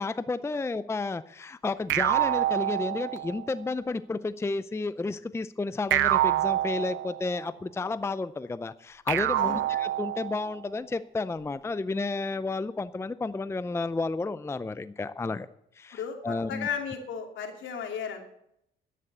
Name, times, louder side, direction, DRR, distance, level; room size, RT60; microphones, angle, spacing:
voice 1, 0.0-15.5 15.8-16.7, left 3 dB, 15° left, 14 dB, 0.5 m, -32 dB
sound 1, 1.9-3.5 5.9-7.5 9.1-10.6, right 14 dB, 75° right, 0.5 m, -27 dB
voice 2, 15.9-18.2, left 7 dB, 75° left, 3 dB, 2.7 m, -34 dB
11.0 x 9.4 x 8.1 m, 0.76 s
cardioid pair, 90°, 20 cm